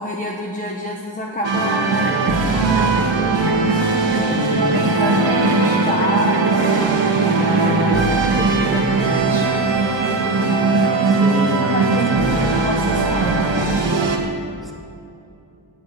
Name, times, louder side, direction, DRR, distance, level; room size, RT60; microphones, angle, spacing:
voice 1, 0.0-3.0 4.0-7.1 7.5-9.7 11.6-13.8, left 1 dB, 20° left, -2 dB, 1.2 m, -27 dB
sound 1, 1.4-14.2, right 3 dB, 80° right, 2.0 m, -19 dB
sound 2, 2.0-9.4, right 3 dB, 30° right, 0.7 m, -32 dB
voice 2, 4.3-4.8 11.0-11.7 12.3-12.4 14.6-14.7, equal, ahead, -1 dB, 1.9 m, -29 dB
17.5 x 7.2 x 8.3 m, 2.7 s
wide cardioid pair, 155°, 44 cm